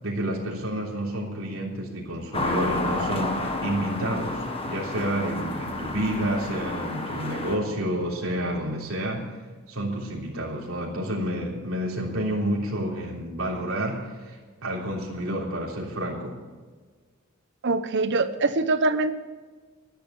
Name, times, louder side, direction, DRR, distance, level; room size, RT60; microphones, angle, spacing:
voice 1, 0.0-9.3 9.7-16.3, right 1 dB, 75° right, -3 dB, 3.4 m, -29 dB
sound 1, 2.3-7.6, left 2 dB, 25° left, 1.5 m, -30 dB
voice 2, 17.6-19.1, right 3 dB, 55° right, 12 dB, 0.9 m, -23 dB
12.5 x 10.5 x 7.0 m, 1.4 s
head